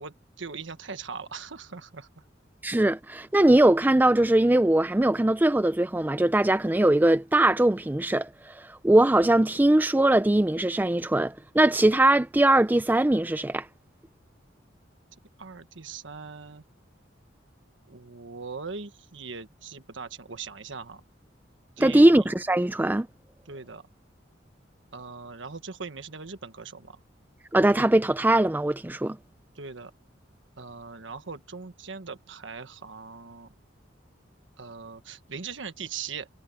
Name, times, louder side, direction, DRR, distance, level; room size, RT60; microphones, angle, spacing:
voice 1, 0.0-2.1 15.4-16.6 17.9-21.0 21.8-22.3 23.4-23.8 24.9-27.0 29.5-29.9 30.6-33.5 34.6-36.3, right 5 dB, 80° right, 1.4 m, -40 dB
voice 2, 2.6-13.7 21.8-23.1 27.5-29.2, right 1 dB, 10° right, 0.4 m, -21 dB
head